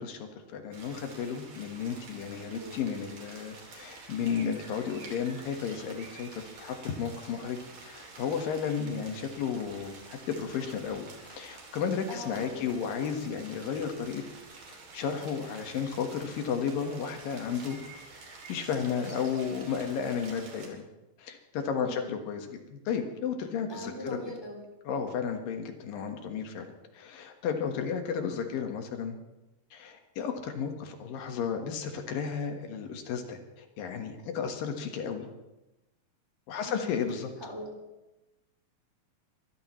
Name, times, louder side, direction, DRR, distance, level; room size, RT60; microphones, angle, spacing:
voice 1, 0.0-6.3 6.6-14.2 14.7-17.8 18.5-20.8 21.2-23.9 24.8-26.7 26.9-29.2 29.7-35.3 36.5-37.3, left 6 dB, 80° left, 4 dB, 3.2 m, -33 dB
sound 1, 0.7-20.7, right 3 dB, 65° right, 4.4 m, -49 dB
voice 2, 12.1-12.8 19.0-19.3 21.8-22.2 23.7-24.6 36.6-37.0 37.4-37.7, equal, 5° right, -1 dB, 3.0 m, -41 dB
24.0 x 15.5 x 3.1 m, 0.99 s
omnidirectional pair, 4.0 m